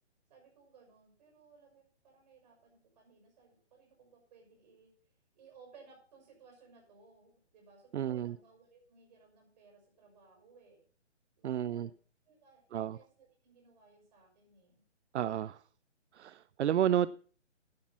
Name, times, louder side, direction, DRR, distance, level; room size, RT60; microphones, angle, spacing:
voice 1, 0.3-4.9 5.3-10.8 11.4-11.9 12.2-14.8, right 5 dB, 35° right, 6.2 m, -61 dB
voice 2, 7.9-8.4 11.4-11.9 12.7-13.0 15.1-15.6 16.1-17.1, right 10 dB, 70° right, 0.5 m, -31 dB
10.5 x 10.5 x 5.7 m
hypercardioid pair, 160°, 35 cm